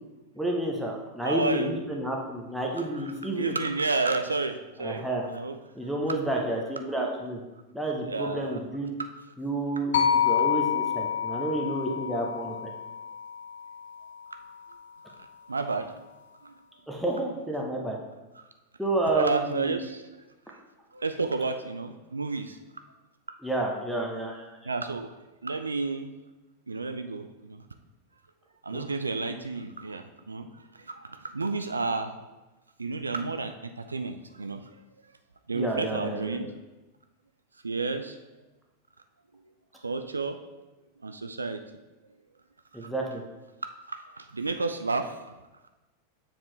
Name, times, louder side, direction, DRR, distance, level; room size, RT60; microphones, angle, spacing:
voice 1, 0.3-3.6 4.8-5.2 5.8-7.4 7.7-8.9 9.4-12.7 16.9-18.0 18.8-19.8 23.4-24.6 28.7-28.9 35.5-36.4 42.7-43.2, right 1 dB, ahead, -2 dB, 0.8 m, -30 dB
voice 2, 1.2-1.7 2.9-5.6 8.1-8.6 15.5-16.0 16.4-16.5 18.4-18.5 19.1-20.0 20.9-22.6 24.6-25.1 25.4-26.1 26.7-27.7 28.6-32.3 32.8-34.7 35.5-36.5 37.6-38.2 39.8-40.4 41.0-41.6 42.7-42.9 43.8-45.2, right 3 dB, 75° right, 8 dB, 0.3 m, -31 dB
sound 1, 9.9-14.1, left 8 dB, 60° left, 0.5 m, -28 dB
7.2 x 4.4 x 3.3 m, 1.1 s
figure-of-eight pair, 90°, 0 cm